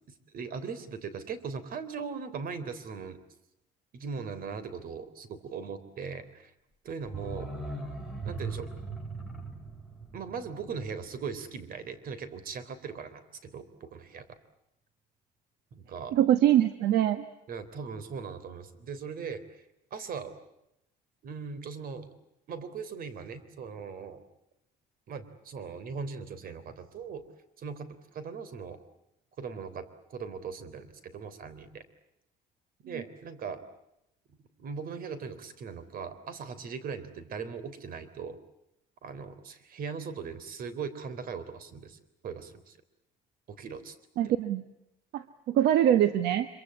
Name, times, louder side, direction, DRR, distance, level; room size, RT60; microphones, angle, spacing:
voice 1, 0.3-3.2 3.9-6.5 6.8-7.5 8.2-8.7 10.1-14.2 15.7-16.2 17.5-19.4 19.9-20.3 21.2-22.1 22.5-24.2 25.1-27.2 27.6-28.8 29.4-31.8 32.9-33.6 34.6-38.4 39.0-42.8 43.5-44.0, right 5 dB, 60° right, 14 dB, 3.4 m, -39 dB
sound 1, 7.1-11.8 12.1-12.2, right 3 dB, 5° right, 7.4 m, -40 dB
voice 2, 16.1-17.2 44.2-44.6 45.1-46.5, right 11 dB, 80° right, 11 dB, 1.3 m, -23 dB
25.5 x 24.0 x 8.4 m, 0.83 s
cardioid pair, 110°, 17 cm